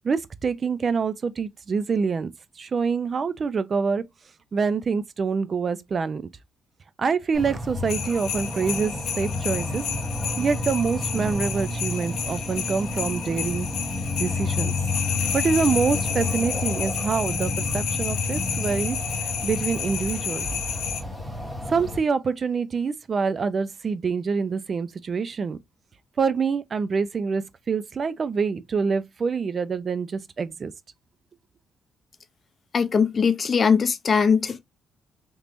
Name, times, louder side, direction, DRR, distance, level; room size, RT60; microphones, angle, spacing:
voice 1, 0.0-2.3 2.6-4.0 4.5-6.2 7.0-9.8 10.4-13.7 14.2-14.7 15.3-19.0 19.4-20.5 21.7-25.6 26.2-30.7, right 5 dB, 40° right, 0.4 m, -26 dB
sound 1, 7.3-22.0, left 2 dB, 5° left, 1.4 m, -30 dB
sound 2, 7.9-21.0, left 8 dB, 80° left, 0.6 m, -31 dB
voice 2, 32.7-34.6, left 6 dB, 40° left, 0.5 m, -20 dB
3.3 x 3.0 x 2.5 m
cardioid pair, 90°, 0 cm